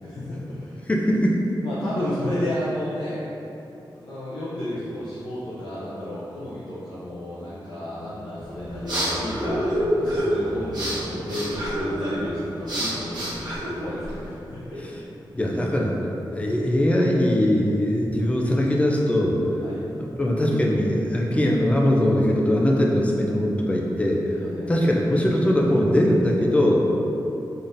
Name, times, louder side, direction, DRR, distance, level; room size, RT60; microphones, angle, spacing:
voice 1, 0.0-0.8 1.6-3.3 3.9-14.8 19.6-19.8 24.4-24.8, left 1 dB, 70° left, -10 dB, 0.6 m, -32 dB
voice 2, 0.9-1.4 15.3-16.0 16.3-19.4 20.0-24.2 24.7-26.8, left 1 dB, 15° left, -2 dB, 0.4 m, -21 dB
sound 1, 8.4-14.3, equal, 55° right, 1.1 m, -28 dB
3.8 x 3.5 x 2.6 m, 2.9 s
wide cardioid pair, 155°, 8 cm